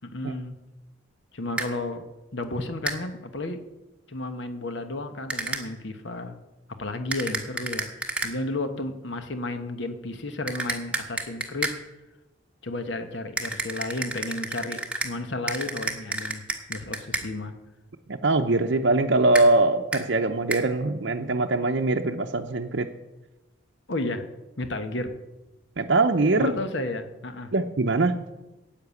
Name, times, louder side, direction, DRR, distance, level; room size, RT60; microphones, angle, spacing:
voice 1, 0.0-0.6 1.3-2.0 2.3-3.6 4.1-6.4 6.8-7.9 8.2-11.7 12.6-16.4 16.7-17.6 23.9-24.3 24.6-25.1 26.4-27.5, left 2 dB, 65° left, 8 dB, 1.1 m, -32 dB
sound 1, 1.6-1.7 2.9-3.0 5.3-5.6 7.1-8.3 10.5-11.8 13.4-15.1 15.5-17.3 19.3-19.5 19.9-20.0 20.5-20.6, right 2 dB, 5° right, 1.2 m, -30 dB
voice 2, 18.1-22.9 25.8-26.5 27.5-28.1, right 2 dB, 60° right, 2 dB, 0.7 m, -22 dB
10.5 x 8.8 x 8.3 m, 1.0 s
head